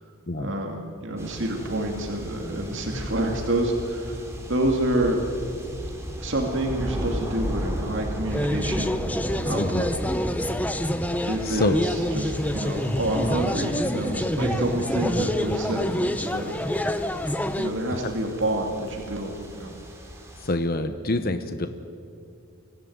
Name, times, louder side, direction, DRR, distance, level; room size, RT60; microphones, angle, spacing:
voice 1, 0.4-4.2 4.5-5.2 6.2-8.9 9.3-9.9 11.3-16.6 17.6-19.7, right 1 dB, 55° right, 1 dB, 2.4 m, -28 dB
sound 1, 1.2-20.5, equal, 10° right, 3.2 m, -35 dB
sound 2, 8.3-17.7, left 1 dB, 5° left, 0.6 m, -27 dB
voice 2, 11.4-11.8 20.4-21.7, left 2 dB, 40° left, 8 dB, 1.0 m, -26 dB
24.0 x 16.5 x 9.5 m, 2.6 s
head